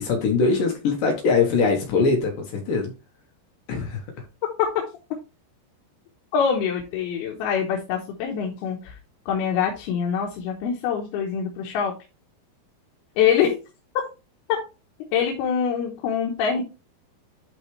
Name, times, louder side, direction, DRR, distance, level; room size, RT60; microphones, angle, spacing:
voice 1, 0.0-2.9 3.7-4.0, left 4 dB, 65° left, 1 dB, 2.7 m, -22 dB
voice 2, 6.3-8.9 9.3-11.9 13.2-13.6 14.5-14.6 15.1-16.6, left 7 dB, 85° left, 0 dB, 3.1 m, -24 dB
11.5 x 4.0 x 3.2 m, 0.30 s
omnidirectional pair, 4.4 m